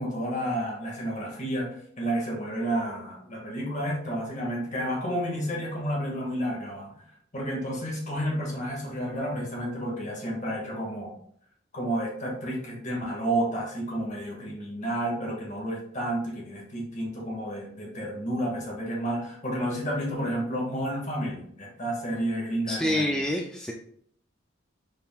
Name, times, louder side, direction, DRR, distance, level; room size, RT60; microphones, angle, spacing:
voice 1, 0.0-7.0 7.3-11.1 11.7-23.2, right 1 dB, 40° left, -3 dB, 1.7 m, -31 dB
voice 2, 22.7-23.7, left 1 dB, 5° left, 0 dB, 0.4 m, -27 dB
5.4 x 4.2 x 2.3 m, 0.65 s
head